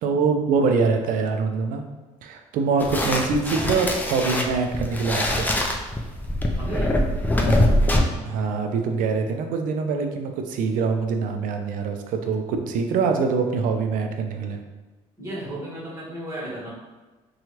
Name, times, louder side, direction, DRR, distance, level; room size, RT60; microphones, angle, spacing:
voice 1, 0.0-1.8 2.2-5.5 8.2-14.6, right 4 dB, 70° right, 5 dB, 0.4 m, -24 dB
sound 1, 2.8-8.0, left 1 dB, 10° left, 0.4 m, -23 dB
voice 2, 6.5-7.0 15.2-16.7, right 1 dB, 20° right, -7 dB, 1.4 m, -34 dB
2.8 x 2.3 x 2.8 m, 1.2 s
supercardioid pair, 70°, 15 cm